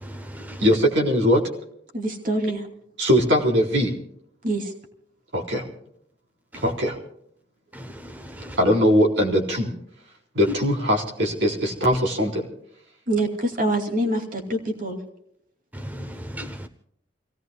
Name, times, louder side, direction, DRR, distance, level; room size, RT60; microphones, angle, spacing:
voice 1, 0.0-0.6 6.5-6.6 7.7-8.6 15.7-16.7, equal, 10° right, 0.8 m, -37 dB
voice 2, 0.6-1.4 3.0-3.9 5.3-5.6 6.6-7.0 8.6-9.7 10.3-12.5, equal, 70° right, 3.9 m, -20 dB
voice 3, 1.9-2.6 4.4-4.7 13.1-15.0, right 1 dB, 45° right, 2.7 m, -25 dB
29.5 x 17.5 x 2.3 m
head